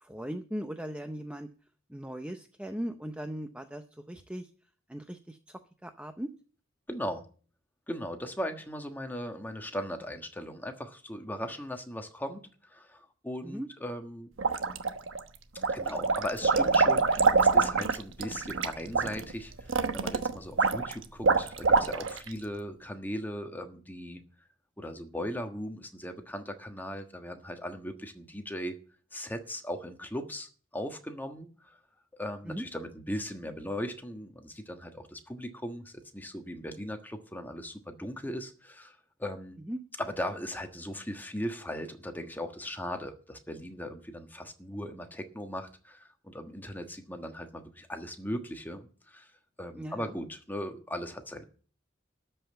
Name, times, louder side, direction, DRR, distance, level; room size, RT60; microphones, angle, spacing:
voice 1, 0.0-1.5 1.9-4.5 4.9-5.4 5.8-6.3 13.4-13.7 32.5-32.6 39.7-39.8 49.7-50.1, equal, 5° right, 0.6 m, -38 dB
voice 2, 6.9-7.2 7.9-14.3 15.7-24.2 24.8-28.8 29.1-31.5 32.1-39.6 40.0-49.3 49.6-51.4, equal, 10° left, 1.4 m, -38 dB
sound 1, 14.4-15.2 15.6-22.3, right 4 dB, 75° right, 1.1 m, -25 dB
13.0 x 5.5 x 8.7 m
head